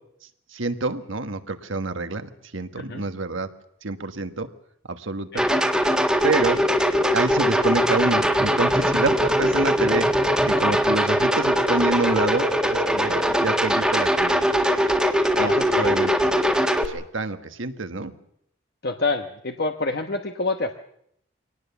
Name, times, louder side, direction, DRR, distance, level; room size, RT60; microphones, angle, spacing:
voice 1, 0.5-3.5 3.8-4.5 4.9-5.5 6.2-6.6 7.1-10.1 10.4-14.8 15.3-16.3 16.8-18.1, right 3 dB, 70° right, 9 dB, 1.5 m, -27 dB
sound 1, 5.4-16.8, equal, 5° right, 1.6 m, -21 dB
voice 2, 15.4-16.0 18.8-20.7, left 3 dB, 50° left, 5 dB, 1.1 m, -27 dB
24.5 x 18.5 x 7.2 m, 0.73 s
head